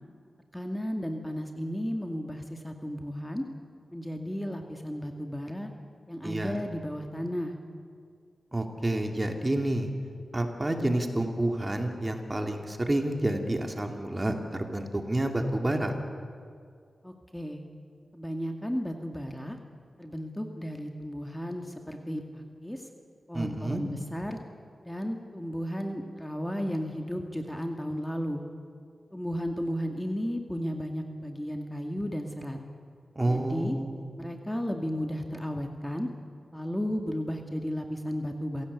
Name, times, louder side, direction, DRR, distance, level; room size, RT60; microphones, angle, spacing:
voice 1, 0.5-3.4 3.9-5.7 6.1-7.6 17.0-17.6 18.1-19.6 20.0-22.9 23.3-24.4 24.9-28.4 29.1-32.6 33.3-33.8 34.2-36.1 36.5-38.7, equal, 10° left, 4 dB, 2.1 m, -34 dB
voice 2, 6.2-6.6 8.5-9.9 10.3-15.9 23.3-23.8 33.2-34.0, right 1 dB, 25° right, 4 dB, 2.7 m, -29 dB
27.0 x 17.0 x 8.3 m, 2.2 s
wide cardioid pair, 70°, 0 cm